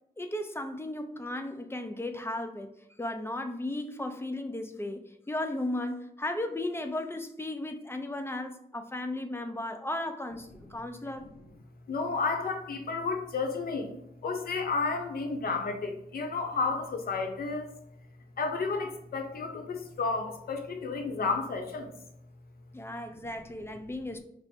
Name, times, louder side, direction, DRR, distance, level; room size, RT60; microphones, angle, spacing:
voice 1, 0.2-2.7 3.0-11.3 22.7-24.2, left 1 dB, 15° left, 6 dB, 0.4 m, -35 dB
voice 2, 11.9-13.9 14.2-17.7 18.4-21.9, left 4 dB, 80° left, 4 dB, 0.7 m, -31 dB
4.6 x 2.0 x 4.4 m, 0.76 s
wide cardioid pair, 100°, 15 cm